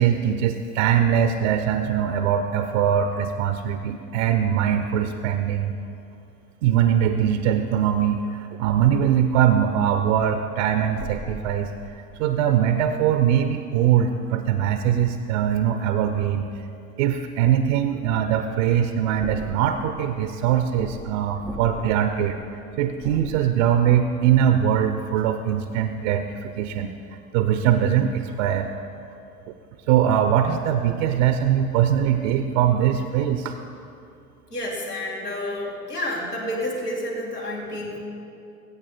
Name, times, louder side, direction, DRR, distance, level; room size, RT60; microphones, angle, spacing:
voice 1, 0.0-5.8 6.6-11.7 12.2-16.7 17.0-22.4 22.8-28.7 29.5-29.6 29.9-33.6, right 9 dB, 55° right, 8 dB, 0.8 m, -22 dB
sound 1, 10.9-13.2 19.1-24.7 25.1-25.2, right 1 dB, 5° right, 0.3 m, -41 dB
voice 2, 34.5-38.0, left 1 dB, 90° left, -5 dB, 2.7 m, -30 dB
21.0 x 8.8 x 4.2 m, 2.6 s
figure-of-eight pair, 75°, 46 cm